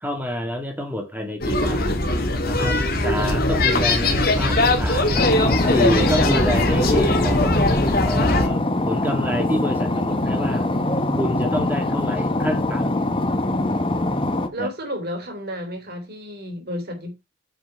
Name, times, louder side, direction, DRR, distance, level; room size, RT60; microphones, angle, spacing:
voice 1, 0.0-2.1 2.4-5.3 5.7-7.6 8.0-10.7 11.2-12.9 14.6-14.7, equal, 10° right, 2.4 m, -27 dB
sound 1, 1.4-8.5, left 2 dB, 45° left, 2.1 m, -20 dB
sound 2, 5.1-14.5, left 1 dB, 25° left, 1.0 m, -23 dB
voice 2, 14.5-17.1, equal, 50° right, 3.1 m, -31 dB
9.2 x 5.1 x 4.9 m
head